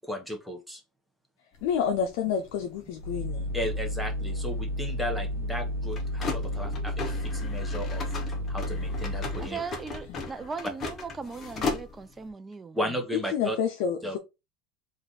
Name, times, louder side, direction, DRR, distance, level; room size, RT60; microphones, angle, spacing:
voice 1, 0.0-0.8 3.1-8.0 8.5-9.6 12.7-13.6 14.0-14.2, equal, ahead, 1.0 m, -35 dB
sound 1, 1.5-12.3, left 3 dB, 30° left, 1.0 m, -38 dB
voice 2, 1.6-3.5 13.3-14.2, left 7 dB, 70° left, 0.6 m, -28 dB
sound 2, 3.0-9.5, left 1 dB, 80° right, 0.6 m, -32 dB
voice 3, 9.4-12.8 14.0-14.1, right 5 dB, 20° right, 0.4 m, -38 dB
3.0 x 2.5 x 4.0 m
supercardioid pair, 105°, 0 cm